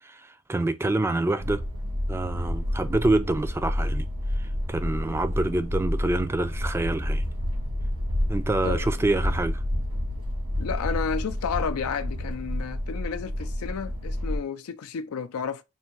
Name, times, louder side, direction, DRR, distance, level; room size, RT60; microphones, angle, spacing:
voice 1, 0.5-1.6 2.1-4.1 4.7-7.2 8.3-9.6, right 2 dB, 10° right, 0.3 m, -26 dB
sound 1, 1.4-14.4, left 1 dB, 90° right, 1.7 m, -29 dB
voice 2, 8.6-9.0 10.6-15.6, left 6 dB, 80° left, 0.4 m, -32 dB
3.5 x 2.7 x 4.4 m
head